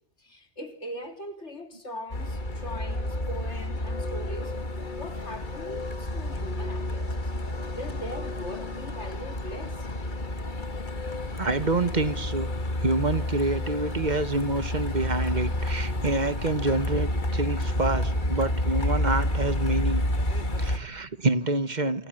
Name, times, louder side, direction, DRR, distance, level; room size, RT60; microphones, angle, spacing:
voice 1, 0.2-4.6 4.9-7.3 7.7-9.9, equal, 85° left, 3.7 m, -40 dB
Truck, 2.1-20.8, left 1 dB, 45° left, 2.0 m, -30 dB
voice 2, 11.4-12.5 12.8-20.0 20.6-22.1, right 2 dB, 40° right, 1.4 m, -27 dB
27.5 x 27.5 x 7.8 m
omnidirectional pair, 1.2 m